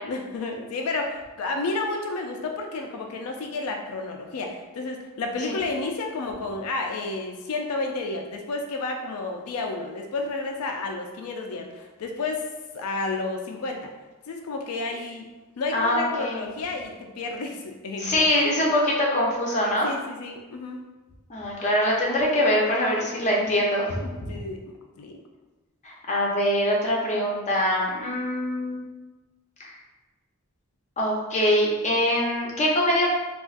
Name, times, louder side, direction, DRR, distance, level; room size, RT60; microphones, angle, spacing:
voice 1, 0.0-12.5 12.7-13.9 14.3-15.2 15.6-18.3 19.8-20.8 24.3-25.2, left 3 dB, 90° left, 2 dB, 0.4 m, -31 dB
voice 2, 15.7-16.4 18.0-19.9 21.3-24.4 25.8-28.8 29.6-29.7 31.0-33.1, left 1 dB, 35° left, -3 dB, 0.6 m, -23 dB
3.8 x 2.4 x 2.4 m, 1.2 s
head